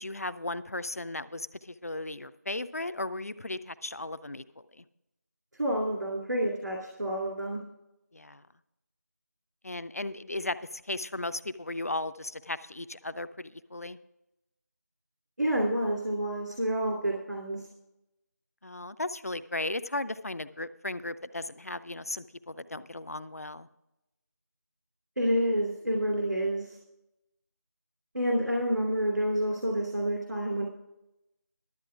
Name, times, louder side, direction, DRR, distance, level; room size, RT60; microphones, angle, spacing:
voice 1, 0.0-4.8 8.1-8.4 9.6-10.6 10.9-14.0 18.6-23.7, left 2 dB, 55° left, 14 dB, 0.5 m, -36 dB
voice 2, 5.6-7.6 15.4-17.6 25.2-26.8 28.1-30.6, right 1 dB, 85° right, -1 dB, 2.6 m, -28 dB
12.0 x 8.4 x 4.9 m, 0.91 s
figure-of-eight pair, 180°, 10 cm